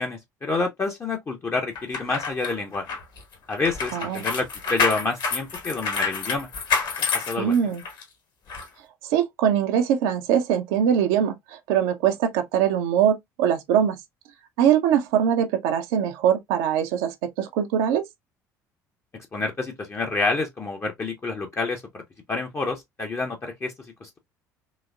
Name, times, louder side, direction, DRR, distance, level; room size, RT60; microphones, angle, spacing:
voice 1, 0.0-2.9 3.5-6.5 7.1-7.5 19.3-22.0 22.3-23.7 24.0-24.2, left 3 dB, 25° left, 0.7 m, -28 dB
sound 1, 1.8-8.0 8.5-8.7, left 5 dB, 45° left, 1.2 m, -28 dB
voice 2, 3.9-4.2 7.4-7.8 9.0-14.0 14.6-18.0, right 9 dB, 60° right, 0.5 m, -22 dB
3.9 x 2.8 x 2.3 m
figure-of-eight pair, 60°, 10 cm